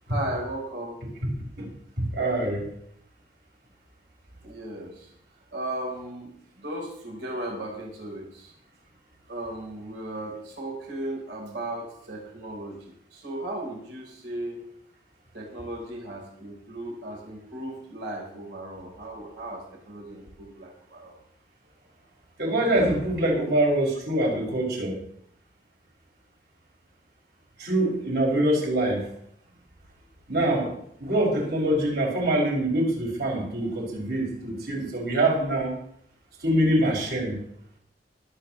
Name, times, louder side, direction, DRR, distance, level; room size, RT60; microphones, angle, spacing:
voice 1, 0.1-1.0 4.4-5.1 5.5-8.5 9.3-14.6 15.3-21.2, right 1 dB, 85° right, -1 dB, 3.9 m, -36 dB
voice 2, 2.1-2.6 22.4-25.0 27.6-29.0 30.3-30.7 31.0-35.7 36.4-37.3, right 1 dB, 65° right, -2 dB, 6.0 m, -24 dB
25.0 x 8.8 x 3.1 m, 0.69 s
head